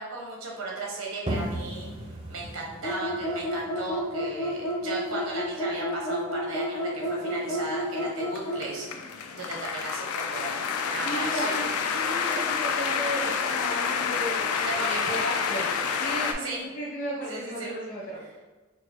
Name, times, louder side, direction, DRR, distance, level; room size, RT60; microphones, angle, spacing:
voice 1, 0.0-1.9 2.3-8.9 9.3-11.6 14.5-15.0 16.4-16.7 17.3-17.7, right 2 dB, 85° right, -2 dB, 0.9 m, -36 dB
sound 1, 1.3-6.7, right 1 dB, 25° right, 0.4 m, -38 dB
sound 2, 2.8-8.7, equal, 70° left, 0.8 m, -30 dB
sound 3, 7.1-16.3, left 6 dB, 90° left, 0.4 m, -29 dB
voice 2, 11.0-11.7 11.9-14.5 14.8-18.2, equal, 40° left, -6 dB, 0.7 m, -34 dB
4.5 x 2.0 x 2.9 m, 1.3 s
head